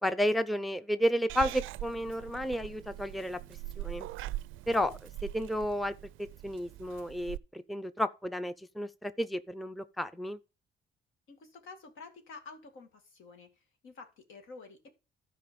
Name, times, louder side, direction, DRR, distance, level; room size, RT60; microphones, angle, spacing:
voice 1, 0.0-3.4 3.8-4.1 4.7-5.9 6.4-10.4, equal, ahead, 0.5 m, -32 dB
Purr / Meow, 1.3-7.4, right 16 dB, 85° right, 0.4 m, -42 dB
voice 2, 11.3-14.9, left 4 dB, 80° left, 2.2 m, -50 dB
12.5 x 4.8 x 5.2 m
cardioid pair, 90°, 20 cm